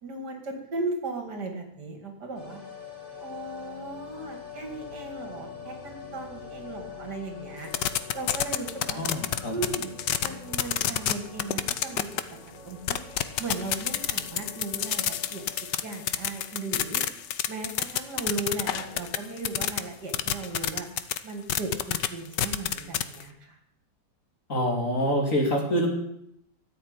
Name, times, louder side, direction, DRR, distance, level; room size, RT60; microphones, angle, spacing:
voice 1, 0.0-2.6 3.2-9.0 9.5-9.9 10.2-12.1 12.6-13.0 13.4-15.4 15.8-17.0 17.5-20.9 21.2-23.6, right 3 dB, 60° right, 5 dB, 3.1 m, -36 dB
sound 1, 2.3-17.2 17.5-17.6, left 6 dB, 25° left, 3.5 m, -44 dB
sound 2, 7.7-10.3 10.5-11.1 11.4-12.2 12.9-19.8 20.1-21.2 21.5-22.1 22.3-23.2, left 11 dB, 70° left, 1.4 m, -27 dB
voice 2, 9.0-9.5 24.5-25.9, equal, 40° left, 1 dB, 3.3 m, -26 dB
13.5 x 7.8 x 9.8 m, 0.75 s
omnidirectional pair, 2.1 m